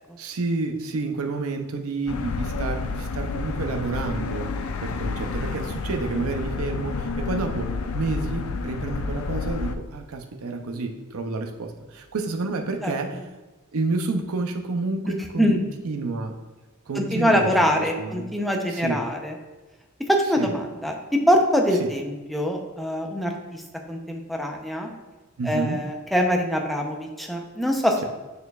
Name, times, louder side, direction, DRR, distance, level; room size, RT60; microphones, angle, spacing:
voice 1, 0.2-13.2 13.7-15.6 15.8-16.4 16.9-18.3 18.7-19.0 20.4-20.6 21.8-21.9 25.4-25.8, right 3 dB, 85° right, 4 dB, 0.6 m, -29 dB
sound 1, 2.1-9.8, left 4 dB, 75° left, 0.4 m, -30 dB
voice 2, 16.9-19.3 20.1-20.9 21.3-23.6 23.9-24.9 25.4-28.0, equal, ahead, 1 dB, 0.6 m, -23 dB
6.7 x 6.6 x 2.3 m, 1.2 s
head